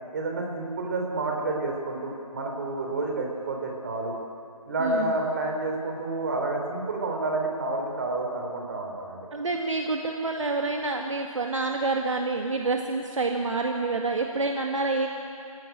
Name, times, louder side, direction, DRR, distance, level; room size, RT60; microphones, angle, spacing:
voice 1, 0.1-4.2 4.6-9.3, right 2 dB, 30° right, 1 dB, 4.0 m, -29 dB
voice 2, 4.8-5.1 9.3-15.1, right 3 dB, 55° right, 2 dB, 2.1 m, -27 dB
27.5 x 17.0 x 9.3 m, 2.5 s
figure-of-eight pair, 160°, 18 cm